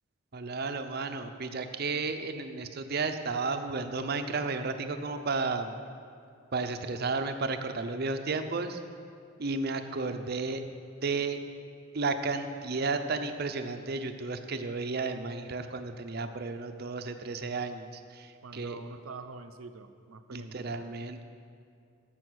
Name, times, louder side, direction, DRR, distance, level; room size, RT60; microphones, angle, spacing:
voice 1, 0.3-5.8 6.5-8.8 9.4-10.6 11.0-11.4 11.9-18.8 20.3-21.2, right 3 dB, 50° right, 8 dB, 0.6 m, -33 dB
voice 2, 18.4-20.7, right 4 dB, 85° right, 9 dB, 0.7 m, -45 dB
11.0 x 7.6 x 6.3 m, 2.4 s
head